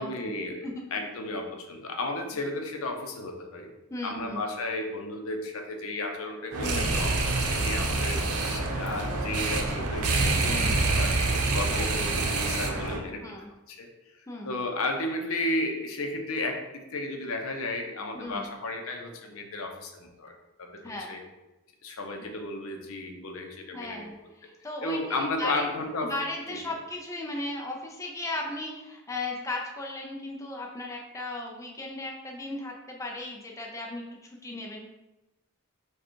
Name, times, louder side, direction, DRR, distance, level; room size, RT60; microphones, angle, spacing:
voice 1, 0.0-3.7 4.0-8.2 8.5-11.2 11.5-13.2 13.7-13.9 14.4-16.6 16.9-20.8 21.1-21.2 21.8-24.1 24.8-26.1 26.5-26.6, left 2 dB, 65° left, 3 dB, 0.6 m, -33 dB
voice 2, 3.9-4.4 6.6-6.8 10.4-10.7 11.7-11.9 13.2-13.5 14.3-14.5 18.1-18.5 20.8-21.1 22.2-22.3 23.7-25.7 26.0-34.9, left 2 dB, 15° left, -1 dB, 0.5 m, -36 dB
sound 1, 6.5-13.0, right 3 dB, 85° right, 0.7 m, -26 dB
5.0 x 2.3 x 4.4 m, 1.0 s
head